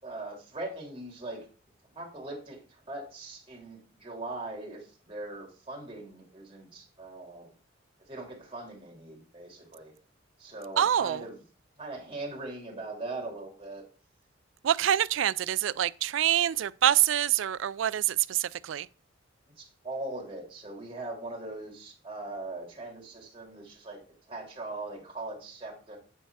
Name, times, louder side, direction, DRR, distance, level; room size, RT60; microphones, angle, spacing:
voice 1, 0.0-1.5 1.9-7.5 8.0-9.9 10.4-11.4 11.8-13.8 19.6-26.0, right 2 dB, 30° right, 2.9 m, -40 dB
voice 2, 10.8-11.2 14.6-18.9, right 11 dB, 85° right, 0.4 m, -26 dB
9.1 x 4.6 x 4.7 m
head